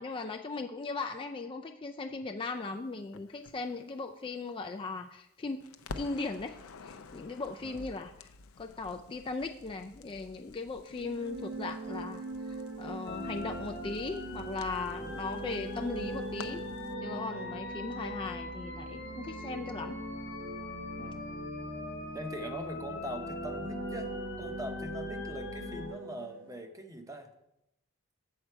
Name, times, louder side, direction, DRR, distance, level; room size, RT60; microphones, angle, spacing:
voice 1, 0.0-5.6 6.0-8.3 8.6-16.6 16.9-20.0, left 3 dB, 25° left, 4 dB, 0.4 m, -38 dB
Crackle, 3.1-5.3 5.6-16.9, left 4 dB, 85° left, 0.5 m, -51 dB
sound 1, 10.9-26.6, right 2 dB, 65° right, 1.2 m, -42 dB
sound 2, 13.1-25.9, left 2 dB, 55° left, 1.0 m, -42 dB
voice 2, 21.0-21.3 22.1-27.3, right 1 dB, 15° right, 6 dB, 0.8 m, -42 dB
7.6 x 7.4 x 4.5 m, 0.85 s
head